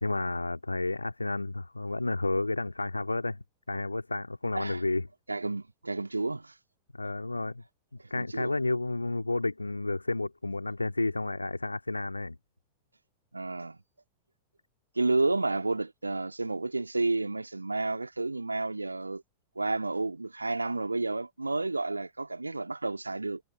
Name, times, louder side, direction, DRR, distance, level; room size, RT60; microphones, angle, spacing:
voice 1, 0.0-5.1 6.9-7.6 8.1-12.4, left 2 dB, 85° left, 2.0 m, -31 dB
voice 2, 5.3-6.5 7.0-7.1 8.2-8.5 13.3-13.8 15.0-19.2 19.6-23.4, right 3 dB, 80° right, 1.9 m, -31 dB
figure-of-eight pair, 90°, 0 cm